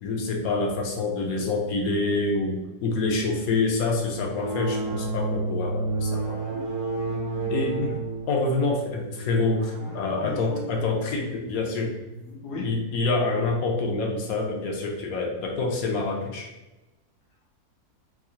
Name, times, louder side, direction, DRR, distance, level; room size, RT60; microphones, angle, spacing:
voice 1, 0.0-6.4 7.5-8.0 8.3-12.0 12.6-16.5, left 3 dB, 70° left, 0 dB, 1.0 m, -26 dB
sound 1, 4.3-12.4, right 3 dB, 70° right, 1.2 m, -32 dB
voice 2, 7.1-7.5 7.8-8.0 9.8-10.6 12.3-12.7, left 1 dB, 90° left, -2 dB, 1.4 m, -39 dB
4.6 x 2.0 x 2.8 m, 1.0 s
omnidirectional pair, 1.7 m